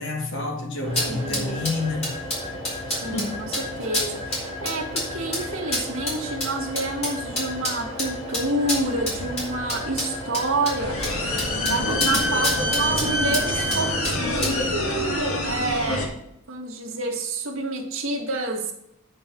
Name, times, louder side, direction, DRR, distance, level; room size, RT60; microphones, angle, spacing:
voice 1, 0.0-2.1 3.1-3.4, left 3 dB, 60° left, 2.0 m, -28 dB
sound 1, 0.8-14.7, left 1 dB, 30° left, 3.4 m, -30 dB
voice 2, 1.1-1.6 2.9-16.1 16.5-18.7, right 2 dB, 75° right, 2.0 m, -29 dB
sound 2, 10.8-16.0, left 1 dB, 85° left, 2.1 m, -25 dB
8.7 x 5.4 x 6.2 m
head